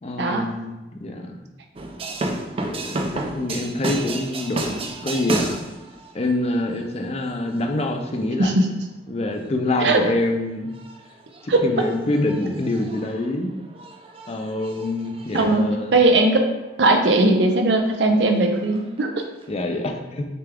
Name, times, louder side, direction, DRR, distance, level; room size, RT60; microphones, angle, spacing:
voice 1, 0.0-1.4 2.6-5.6 6.1-8.5 9.1-10.7 11.4-13.5 14.3-16.0 19.5-20.3, left 1 dB, 35° left, 4 dB, 0.5 m, -26 dB
sound 1, 1.8-8.5 9.3-9.9 10.2-10.4 10.7-16.8 17.0-19.6, right 2 dB, 30° right, 0.4 m, -33 dB
voice 2, 8.4-8.7 9.8-10.0 11.5-11.6 15.3-16.4 16.8-19.1, right 2 dB, 80° right, 4 dB, 0.6 m, -18 dB
6.7 x 2.3 x 3.4 m, 1.1 s
head